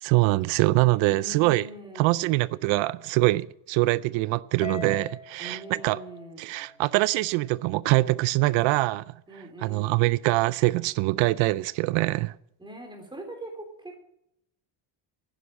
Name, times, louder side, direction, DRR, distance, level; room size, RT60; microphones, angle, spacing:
voice 1, 0.0-1.7 2.0-6.0 6.4-9.0 9.6-12.3, right 20 dB, 90° right, 0.6 m, -24 dB
voice 2, 1.1-2.5 5.4-6.7 9.3-10.1 12.6-14.0, right 2 dB, 10° right, 3.5 m, -42 dB
Harp, 4.6-7.1, left 5 dB, 15° left, 1.8 m, -41 dB
11.5 x 10.0 x 7.8 m
cardioid pair, 155°, 44 cm